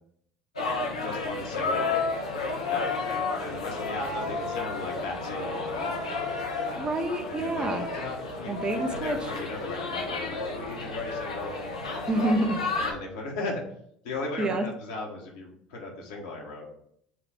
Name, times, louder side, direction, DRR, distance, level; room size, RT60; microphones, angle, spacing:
sound 1, 0.6-12.9, left 3 dB, 90° left, 0.7 m, -32 dB
voice 1, 1.0-2.0 2.7-2.9 3.4-6.1 7.3-11.5 12.7-13.6 14.0-16.7, left 2 dB, 70° left, -1 dB, 1.2 m, -37 dB
voice 2, 6.8-7.9 8.5-9.2 12.1-12.6 14.4-14.7, right 2 dB, 25° right, 5 dB, 0.7 m, -27 dB
5.9 x 2.4 x 3.4 m, 0.67 s
hypercardioid pair, 65°, 3 cm